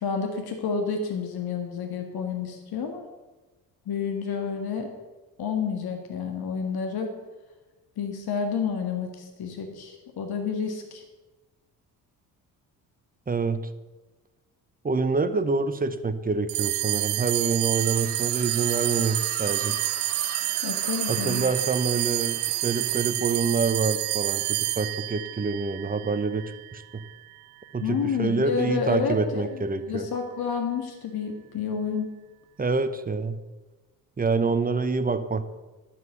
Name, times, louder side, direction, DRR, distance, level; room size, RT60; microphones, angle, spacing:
voice 1, 0.0-3.1 3.9-4.9 5.4-7.1 8.0-11.0 20.6-21.5 27.8-32.1, left 6 dB, 50° left, 4 dB, 1.7 m, -30 dB
voice 2, 13.3-13.6 14.8-19.8 21.1-26.4 26.7-27.0 27.7-30.1 32.6-33.4 34.2-35.4, right 4 dB, 20° right, 12 dB, 0.9 m, -26 dB
sound 1, 16.5-27.1, right 20 dB, 75° right, 0.6 m, -28 dB
sound 2, 17.6-23.5, left 1 dB, 10° left, 3.4 m, -41 dB
11.0 x 7.6 x 6.8 m, 1.2 s
hypercardioid pair, 50°, 49 cm